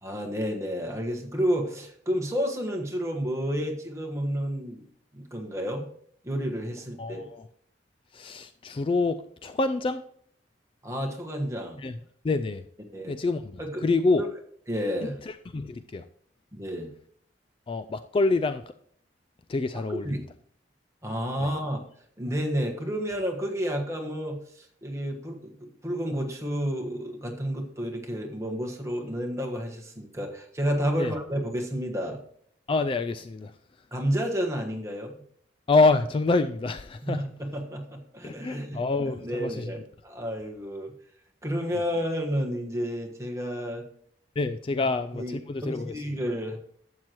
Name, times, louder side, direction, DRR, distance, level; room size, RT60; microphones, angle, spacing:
voice 1, 0.0-4.9 5.1-5.9 6.2-7.3 10.8-11.8 12.9-13.1 13.6-13.8 14.7-15.2 16.5-16.9 19.7-20.3 21.0-21.8 22.2-32.2 33.9-35.2 37.0-40.9 41.4-43.8 44.8-44.9 45.1-45.4 45.6-46.6, equal, 15° right, 1 dB, 1.4 m, -31 dB
voice 2, 7.0-7.4 8.1-10.0 11.8-12.0 12.2-12.6 13.1-13.5 13.8-14.2 15.3-16.1 17.7-18.6 19.5-20.2 21.4-21.5 31.0-31.1 32.7-33.5 35.7-37.2 38.2-39.7 44.4-45.9, left 3 dB, 30° left, 11 dB, 0.3 m, -26 dB
12.0 x 7.7 x 3.0 m, 0.63 s
head